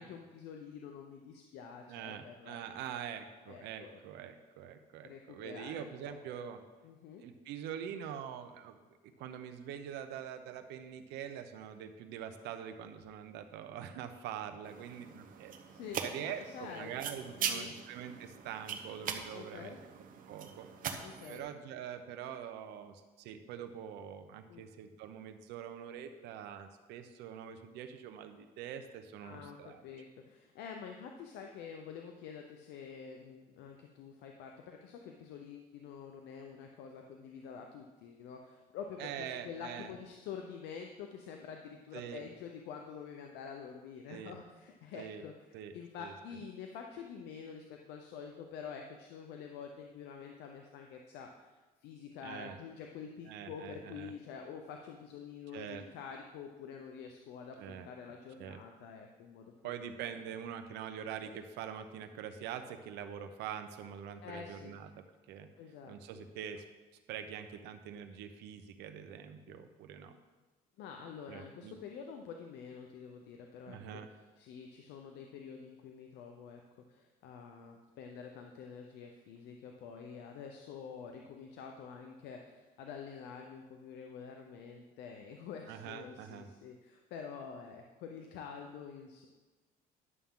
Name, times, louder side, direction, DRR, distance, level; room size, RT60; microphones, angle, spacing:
voice 1, 0.0-2.6 3.5-4.0 5.0-6.2 6.8-7.2 15.4-16.0 16.4-17.0 17.4-17.7 19.3-19.8 21.0-21.5 24.5-24.7 29.2-45.3 45.7-59.7 64.2-64.7 65.6-66.2 69.5-69.6 70.8-74.0 74.4-76.6 76.9-89.3, left 6 dB, 85° left, 3 dB, 0.8 m, -47 dB
voice 2, 1.9-6.6 7.2-8.8 9.2-15.5 16.0-19.7 20.3-21.0 21.3-29.8 39.0-39.9 41.9-42.2 44.1-44.4 44.9-45.2 45.5-46.1 52.2-52.6 53.2-54.1 55.5-55.8 57.6-57.9 58.4-58.6 59.6-65.5 65.9-66.6 67.1-70.1 71.3-71.8 73.7-74.1 85.7-86.5, right 9 dB, 85° right, 8 dB, 0.8 m, -44 dB
sound 1, 14.6-21.4, right 7 dB, 55° right, 1.0 m, -41 dB
11.0 x 7.1 x 3.8 m, 1.2 s
cardioid pair, 110°, 17 cm